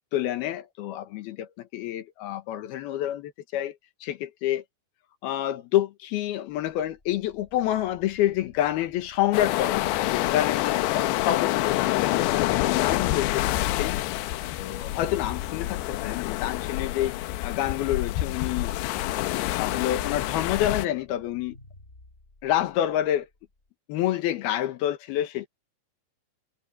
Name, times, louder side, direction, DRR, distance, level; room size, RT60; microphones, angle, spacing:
voice 1, 0.1-3.8 4.0-4.6 5.2-12.3 12.5-14.0 14.6-17.2 17.4-18.7 19.6-21.6 22.4-23.3 23.9-25.5, left 12 dB, 75° left, 3.1 m, -28 dB
sound 1, 6.6-23.7, left 1 dB, 15° left, 3.6 m, -54 dB
sound 2, 9.3-20.9, left 16 dB, 90° left, 3.0 m, -27 dB
omnidirectional pair, 4.7 m